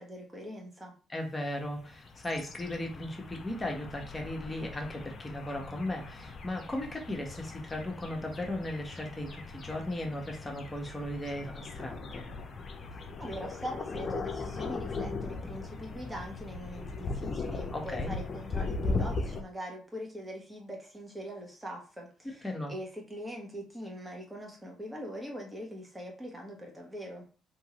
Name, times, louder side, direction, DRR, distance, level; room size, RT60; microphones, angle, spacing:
voice 1, 0.0-0.9 12.9-27.3, equal, 15° right, 0 dB, 1.5 m, -42 dB
voice 2, 1.1-12.2 17.7-18.1 22.4-22.7, left 1 dB, 20° left, 1 dB, 1.3 m, -36 dB
sound 1, 1.7-19.4, left 3 dB, 45° left, 0.7 m, -38 dB
3.5 x 2.9 x 3.1 m, 0.39 s
hypercardioid pair, 55°, 0 cm